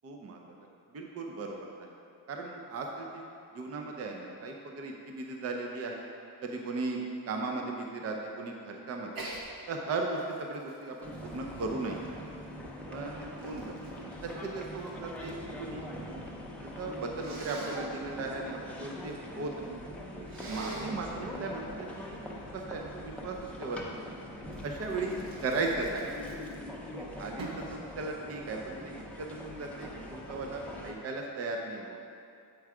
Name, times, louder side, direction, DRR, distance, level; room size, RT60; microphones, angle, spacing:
voice 1, 0.0-0.5 0.9-2.0 2.3-3.2 3.5-6.1 6.4-7.0 7.3-9.2 9.7-12.0 12.9-13.7 14.0-15.8 16.6-19.7 20.1-22.2 22.5-24.0 24.6-26.2 27.0-32.0, right 3 dB, 40° right, 1 dB, 0.6 m, -37 dB
Sneeze, 9.1-9.4 9.9-12.3 13.0-15.4 15.7-16.3 17.2-17.8 20.3-21.0 24.5-26.8 27.4-27.7, right 2 dB, 75° right, 1.2 m, -45 dB
sound 1, 11.0-30.9, left 1 dB, 5° left, 0.7 m, -43 dB
7.6 x 4.6 x 4.8 m, 2.4 s
wide cardioid pair, 165°, 36 cm